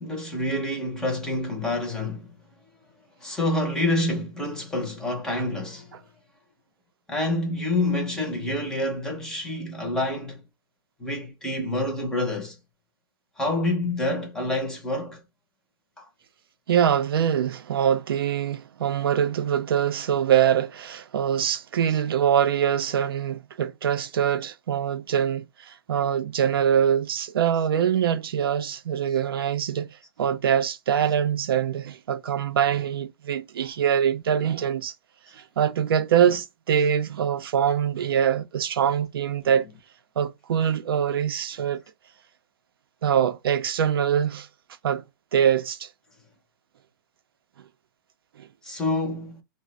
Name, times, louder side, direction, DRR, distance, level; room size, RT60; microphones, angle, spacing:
voice 1, 0.0-2.3 3.2-6.0 7.1-10.4 11.0-12.6 13.4-15.2 16.0-16.1 48.6-49.4, left 1 dB, 5° left, 0.5 m, -27 dB
voice 2, 16.7-29.9 30.2-34.9 35.3-39.7 40.2-41.8 43.0-44.5 44.8-45.0 45.3-45.9 48.4-48.5, right 9 dB, 85° right, 0.5 m, -24 dB
2.4 x 2.0 x 3.8 m
hypercardioid pair, 165°, 12 cm